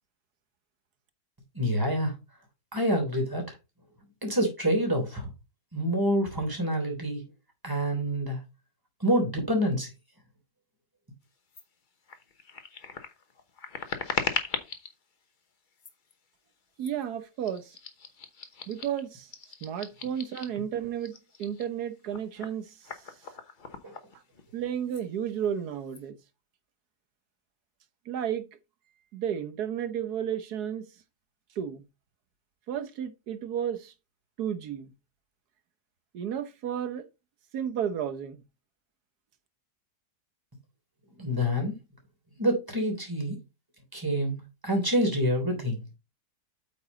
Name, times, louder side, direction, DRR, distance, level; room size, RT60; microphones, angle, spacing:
voice 1, 1.5-2.1 2.7-3.4 4.2-5.3 5.7-7.2 7.6-8.4 9.0-9.9 41.2-41.7 42.4-43.4 43.9-44.4 44.6-45.8, equal, 15° right, 3.4 m, -27 dB
sound 1, 11.5-11.6 12.0-14.9 15.7-16.1 16.8-17.0 17.4-20.6 21.0-24.6 24.9-25.0 25.4-26.0, left 5 dB, 35° left, 1.0 m, -38 dB
voice 2, 16.8-17.8 18.7-19.3 19.6-22.8 24.5-26.2 28.1-28.4 29.1-30.9 31.6-31.8 32.7-33.9 34.4-34.9 36.1-37.1 37.5-38.4, right 9 dB, 85° right, 1.5 m, -32 dB
8.4 x 5.4 x 3.9 m
omnidirectional pair, 1.6 m